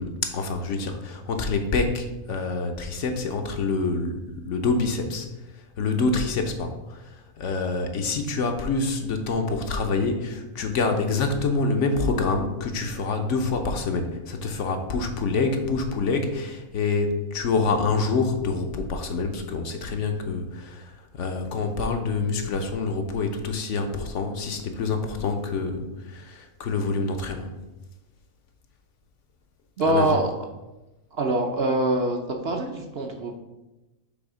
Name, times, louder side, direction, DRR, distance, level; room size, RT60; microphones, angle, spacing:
voice 1, 0.0-5.3 5.8-27.5 29.9-30.2, left 3 dB, 65° left, 5 dB, 0.9 m, -26 dB
voice 2, 29.8-30.3 31.1-32.2 32.4-33.4, right 1 dB, 55° right, 2 dB, 0.8 m, -24 dB
6.2 x 3.3 x 4.9 m, 1.0 s
omnidirectional pair, 1.5 m